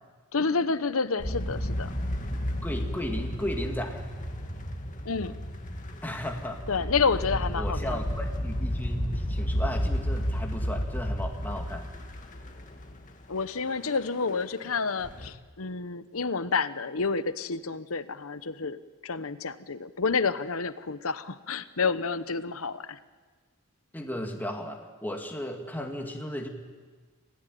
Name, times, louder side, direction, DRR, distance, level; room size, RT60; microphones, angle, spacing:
voice 1, 0.3-1.9 5.0-5.4 6.7-8.0 13.3-23.0, left 4 dB, 75° left, 13 dB, 1.0 m, -29 dB
sound 1, 1.2-13.5 13.9-14.7 15.0-15.3, equal, 35° left, 2.2 m, -32 dB
voice 2, 2.6-4.0 6.0-6.6 7.3-11.9 23.9-26.5, equal, 10° left, 2 dB, 2.3 m, -35 dB
27.0 x 16.5 x 9.3 m, 1.4 s
head